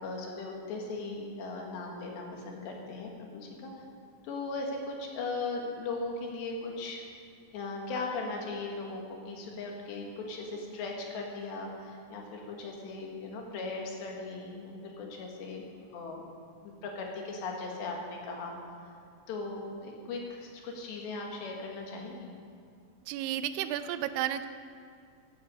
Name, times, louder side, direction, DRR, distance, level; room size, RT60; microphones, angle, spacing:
voice 1, 0.0-3.7 4.2-7.0 7.5-15.6 15.9-16.3 16.6-18.6 19.3-22.3, left 3 dB, 65° left, 0 dB, 3.7 m, -38 dB
voice 2, 23.1-24.5, right 11 dB, 85° right, 10 dB, 2.6 m, -32 dB
16.0 x 10.5 x 6.9 m, 2.3 s
omnidirectional pair, 6.0 m